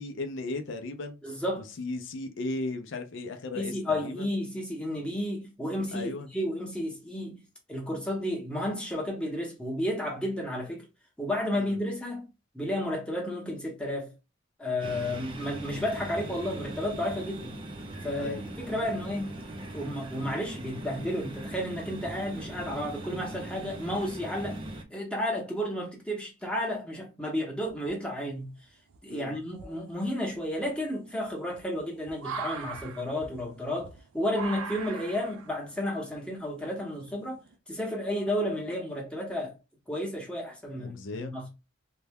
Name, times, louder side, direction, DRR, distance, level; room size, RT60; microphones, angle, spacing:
voice 1, 0.0-1.2 1.6-4.3 5.9-6.3 11.5-11.8 18.2-18.4 29.1-29.4 40.7-41.3, left 2 dB, 60° left, 0.4 m, -36 dB
voice 2, 1.2-1.7 3.6-7.4 7.7-10.9 11.2-12.3 12.5-14.1 14.6-17.5 18.0-19.3 19.7-24.6 24.9-28.5 29.0-37.4 37.7-39.5 39.9-41.5, left 1 dB, 5° left, 0.8 m, -32 dB
sound 1, 14.8-24.8, right 1 dB, 25° right, 0.4 m, -40 dB
sound 2, 27.7-28.3 28.9-29.0 29.5-37.5, right 5 dB, 85° right, 0.5 m, -42 dB
3.2 x 2.1 x 3.4 m
head